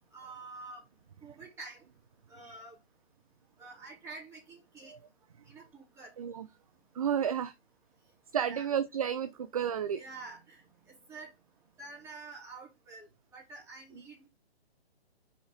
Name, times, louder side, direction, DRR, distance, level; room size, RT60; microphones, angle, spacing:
voice 1, 0.1-0.8 1.2-1.9 2.3-2.8 3.6-4.9 5.5-6.1 8.5-8.7 9.9-11.3 11.8-14.3, right 3 dB, 10° right, 4.2 m, -48 dB
voice 2, 6.2-6.5 6.9-7.5 8.3-10.0, right 8 dB, 35° right, 0.5 m, -31 dB
6.4 x 5.7 x 4.0 m
hypercardioid pair, 160°, 33 cm